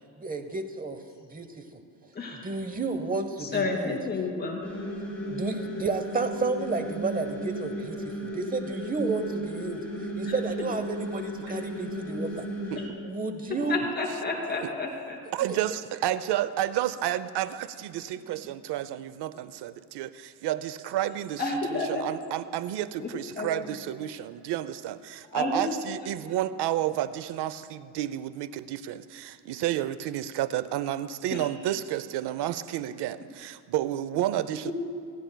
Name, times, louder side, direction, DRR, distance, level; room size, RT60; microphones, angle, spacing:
voice 1, 0.2-1.0 1.3-1.6 2.4-4.0 5.3-9.8 10.2-12.5 13.0-13.8, right 3 dB, 20° right, 0.8 m, -31 dB
voice 2, 2.1-2.5 3.4-4.6 10.2-10.3 11.5-11.6 12.8-12.9 13.6-15.2 21.4-22.2 23.0-23.6 25.3-25.6 31.3-31.5 34.6-34.7, left 3 dB, 25° left, 2.7 m, -31 dB
sound 1, 4.6-12.9, equal, 5° left, 3.5 m, -35 dB
voice 3, 15.3-21.4 21.7-34.7, right 12 dB, 70° right, 0.6 m, -31 dB
29.0 x 10.5 x 2.2 m
cardioid pair, 130°, 42 cm